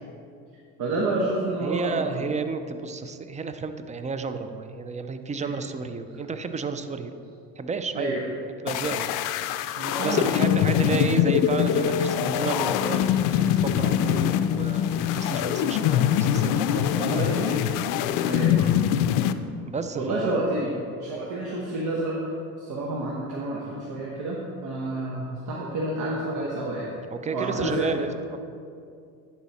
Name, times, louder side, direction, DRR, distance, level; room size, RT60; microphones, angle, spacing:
voice 1, 0.8-2.2 5.4-5.5 7.9-8.2 9.8-10.8 14.0-14.2 16.2-16.3 16.9-17.6 18.2-18.7 19.9-20.7 21.0-22.2 22.6-26.9 27.3-28.1, right 2 dB, 65° right, -3 dB, 1.2 m, -29 dB
voice 2, 1.6-7.1 7.6-8.1 8.6-9.1 10.0-17.3 19.7-20.5 27.1-28.4, right 4 dB, 20° right, 9 dB, 0.5 m, -32 dB
sound 1, 8.7-19.3, left 10 dB, 70° left, 0.4 m, -23 dB
11.0 x 4.2 x 4.3 m, 2.4 s
supercardioid pair, 80°, 32 cm